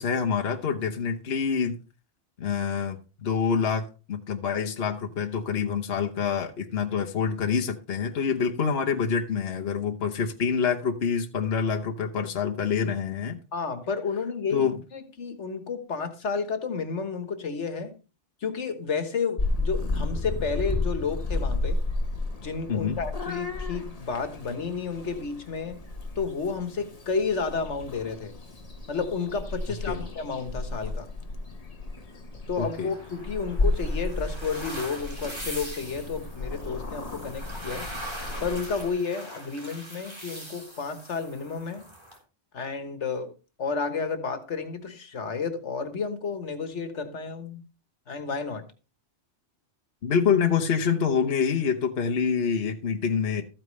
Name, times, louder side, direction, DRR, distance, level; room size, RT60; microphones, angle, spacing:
voice 1, 0.0-1.7 2.4-13.4 14.5-14.8 22.7-23.0 29.9-30.0 32.6-32.9 50.0-53.4, left 6 dB, 60° left, 1.3 m, -26 dB
voice 2, 13.5-17.9 18.4-21.8 22.4-25.8 26.2-28.3 28.9-31.1 32.5-37.9 38.4-41.9 42.5-43.3 43.6-47.6 48.1-48.6, left 5 dB, 85° left, 1.7 m, -31 dB
Purr / Meow, 19.4-38.9, left 2 dB, 35° left, 1.3 m, -33 dB
sound 1, 32.5-42.2, equal, 25° right, 4.0 m, -42 dB
14.0 x 8.9 x 3.3 m
omnidirectional pair, 1.2 m